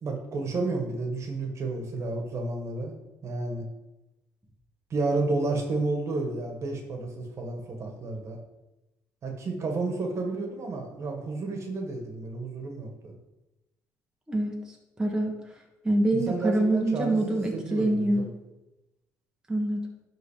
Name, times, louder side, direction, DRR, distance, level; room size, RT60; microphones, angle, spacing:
voice 1, 0.0-2.9 3.2-3.6 4.9-8.4 9.2-13.2 16.1-18.3, right 3 dB, 45° right, 3 dB, 1.7 m, -31 dB
voice 2, 14.3-14.6 15.0-15.4 15.8-18.3 19.5-19.8, right 1 dB, 10° right, 0 dB, 1.5 m, -25 dB
11.0 x 3.9 x 5.1 m, 0.98 s
cardioid pair, 105°, 7 cm